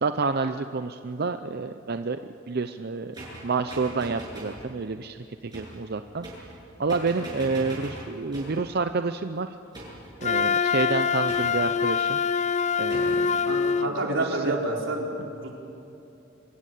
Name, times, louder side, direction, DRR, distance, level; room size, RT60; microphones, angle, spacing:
voice 1, 0.0-2.2 2.5-3.2 3.4-6.5 6.8-9.5 10.2-12.2 12.8-13.5 14.2-14.6, right 4 dB, 55° right, 9 dB, 0.6 m, -29 dB
sound 1, 3.1-4.6 5.5-5.8 6.2-6.6 6.9-8.7 9.7-10.2 11.3-11.8 12.9-13.2, right 1 dB, 20° right, 7.8 m, -40 dB
Wind instrument woodwind instrument, 10.2-13.9, left 6 dB, 35° left, 0.5 m, -24 dB
voice 2, 13.5-15.5, right 2 dB, 90° right, 0 dB, 4.2 m, -29 dB
25.5 x 15.0 x 9.3 m, 2.9 s
head